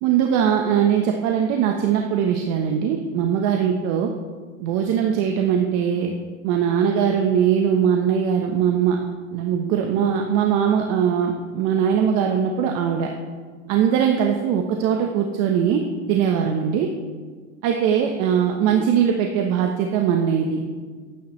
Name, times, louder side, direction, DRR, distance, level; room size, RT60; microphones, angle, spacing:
voice 1, 0.0-4.1 4.6-6.1 6.4-9.0 9.3-13.1 13.7-15.8 16.1-16.9 17.6-20.6, right 8 dB, 50° right, 2 dB, 1.3 m, -21 dB
23.0 x 9.4 x 3.3 m, 1.5 s
hypercardioid pair, 115°, 36 cm